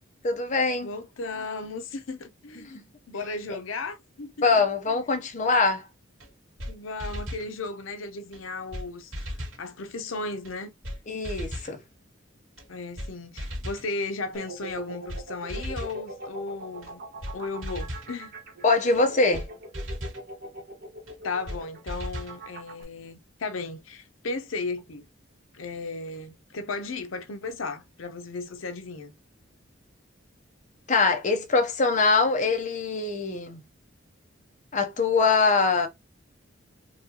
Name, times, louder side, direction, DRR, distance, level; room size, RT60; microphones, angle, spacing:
voice 1, 0.2-0.9 4.4-5.8 11.1-11.8 18.6-19.4 30.9-33.6 34.7-35.9, left 4 dB, 35° left, 0.6 m, -23 dB
voice 2, 0.8-2.8 3.1-5.0 6.7-10.7 12.7-17.0 17.3-18.3 21.2-25.1 25.5-29.1, left 3 dB, 80° left, 0.6 m, -35 dB
sound 1, 6.2-6.3 6.6-6.7 7.0-7.5 8.3-8.4 8.7-8.9 9.1-9.6 10.4-10.5 10.8-11.0 11.2-11.7 12.6-12.7 13.0-13.1 13.4-13.9 14.7-14.8 15.1-15.2 15.5-16.0 16.8-16.9 17.2-17.3 17.6-18.1 18.9-19.0 19.3-19.5 19.7-20.2 21.1-21.2 21.5-21.6 21.9-22.4, equal, 90° right, 1.9 m, -35 dB
sound 2, 14.3-22.8, right 2 dB, 50° right, 1.1 m, -42 dB
4.0 x 2.3 x 2.8 m
head